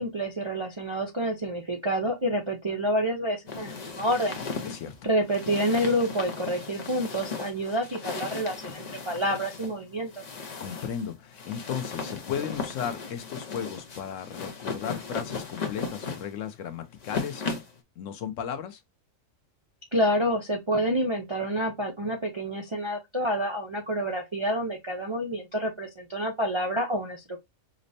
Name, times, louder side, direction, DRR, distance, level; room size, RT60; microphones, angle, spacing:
voice 1, 0.0-4.4 5.0-10.2 19.9-27.5, equal, 45° right, 0.4 m, -28 dB
sound 1, 3.5-17.8, left 4 dB, 40° left, 0.7 m, -37 dB
voice 2, 4.6-4.9 10.6-17.4 18.0-18.8, left 8 dB, 75° left, 1.0 m, -35 dB
5.1 x 2.1 x 2.6 m
omnidirectional pair, 1.4 m